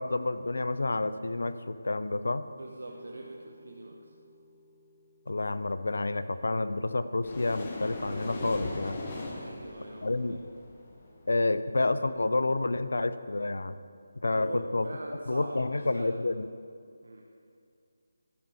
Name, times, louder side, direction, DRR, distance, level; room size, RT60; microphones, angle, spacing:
voice 1, 0.0-2.5 5.3-9.0 10.0-10.4 11.3-13.8 14.2-14.9 15.3-16.5, left 2 dB, 80° left, 13 dB, 0.5 m, -29 dB
voice 2, 2.6-4.1 9.3-10.4 14.3-16.2 17.0-17.3, right 2 dB, 90° right, 1 dB, 0.9 m, -43 dB
sound 1, 2.9-8.6, equal, 5° right, 1.2 m, -58 dB
sound 2, 7.2-11.6, left 2 dB, 25° left, 1.1 m, -40 dB
11.5 x 6.9 x 4.9 m, 2.3 s
figure-of-eight pair, 170°, 0 cm